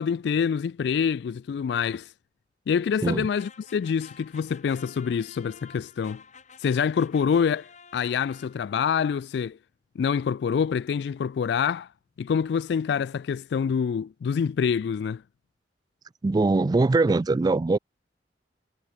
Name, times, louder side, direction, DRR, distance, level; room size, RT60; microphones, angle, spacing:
voice 1, 0.0-2.1 2.7-6.2 6.6-9.6 10.0-11.9 12.2-15.2, left 7 dB, 70° left, 0.3 m, -26 dB
sound 1, 3.4-8.9, left 6 dB, 45° left, 5.0 m, -50 dB
voice 2, 16.2-17.8, right 3 dB, 25° right, 0.3 m, -22 dB
head